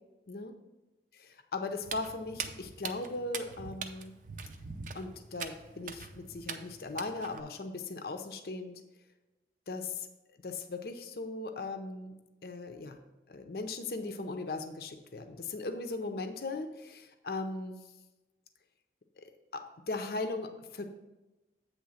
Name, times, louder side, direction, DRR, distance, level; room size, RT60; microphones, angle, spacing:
voice 1, 1.1-4.1 4.9-8.8 9.7-10.1 10.4-12.1 12.4-13.0 13.3-17.8 19.2-20.8, left 3 dB, 60° left, 6 dB, 0.6 m, -38 dB
Walk footsteps, 1.8-7.4, right 5 dB, 50° right, 0.5 m, -42 dB
8.5 x 3.3 x 6.3 m, 1.1 s
head